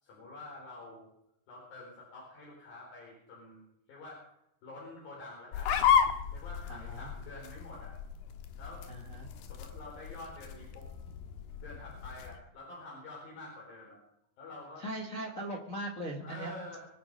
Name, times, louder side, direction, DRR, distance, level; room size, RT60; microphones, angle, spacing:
voice 1, 0.0-1.1 1.5-3.6 3.9-4.2 4.6-5.8 6.3-8.0 8.6-8.9 9.5-10.9 11.6-14.0 14.4-14.9 16.2-16.9, left 2 dB, 65° left, -3 dB, 6.1 m, -47 dB
sound 1, 5.5-12.4, left 8 dB, 80° left, 3.2 m, -33 dB
voice 2, 6.7-7.1 8.9-9.3 14.8-16.5, right 1 dB, 30° left, 0 dB, 1.6 m, -39 dB
25.0 x 9.8 x 5.4 m, 0.81 s
omnidirectional pair, 4.5 m